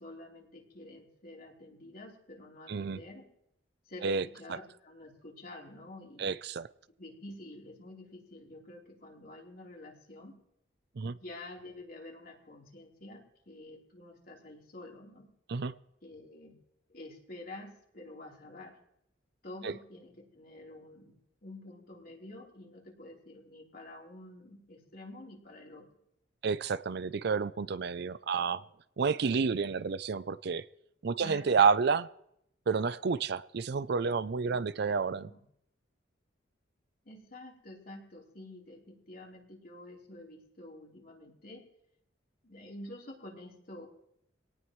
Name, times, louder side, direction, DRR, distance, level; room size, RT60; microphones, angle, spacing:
voice 1, 0.0-3.3 3.9-6.3 7.0-10.4 11.0-15.3 16.0-16.6 16.9-18.8 19.4-25.9 31.2-31.6 34.5-35.4 37.1-41.6 42.4-43.9, left 1 dB, 50° left, -2 dB, 3.7 m, -49 dB
voice 2, 2.7-3.0 4.0-4.2 6.2-6.7 11.0-11.2 15.5-15.7 19.6-19.7 26.4-28.6 29.0-30.6 31.0-32.1 32.7-35.3, right 5 dB, 60° right, 16 dB, 0.5 m, -30 dB
23.0 x 18.0 x 3.2 m, 0.75 s
head